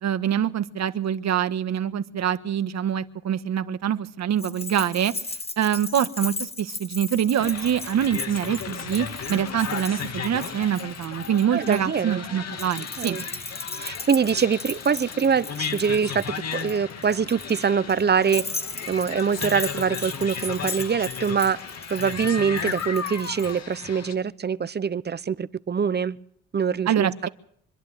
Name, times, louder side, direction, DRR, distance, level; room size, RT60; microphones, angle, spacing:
voice 1, 0.0-5.1 5.6-13.2 26.9-27.3, right 9 dB, 60° right, 1.5 m, -25 dB
Keys jangling, 4.4-11.8 12.5-23.5, left 3 dB, 20° left, 1.6 m, -37 dB
sound 1, 7.4-24.1, left 6 dB, 55° left, 2.6 m, -35 dB
voice 2, 11.5-12.2 13.0-13.2 13.8-18.4 18.9-21.6 21.9-26.2 26.5-27.3, right 6 dB, 35° right, 1.0 m, -24 dB
25.0 x 11.5 x 9.6 m
cardioid pair, 90°, 30 cm